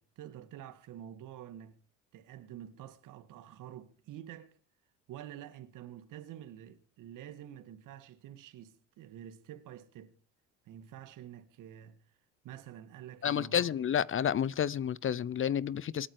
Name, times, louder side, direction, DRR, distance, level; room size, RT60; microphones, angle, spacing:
voice 1, 0.0-1.8 2.1-4.6 5.1-10.1 10.6-12.0 12.4-13.7, right 11 dB, 65° right, 2.2 m, -48 dB
voice 2, 13.2-16.1, left 9 dB, 35° left, 0.7 m, -30 dB
26.5 x 9.1 x 5.0 m
hypercardioid pair, 65°, 34 cm